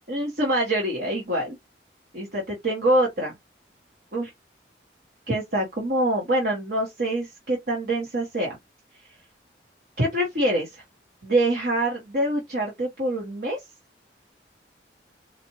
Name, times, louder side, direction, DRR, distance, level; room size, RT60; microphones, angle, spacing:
voice 1, 0.1-1.6 2.1-3.3 4.1-4.3 5.3-8.6 10.0-10.8 11.2-13.6, right 1 dB, 55° right, 1.2 m, -25 dB
4.2 x 2.5 x 2.9 m
head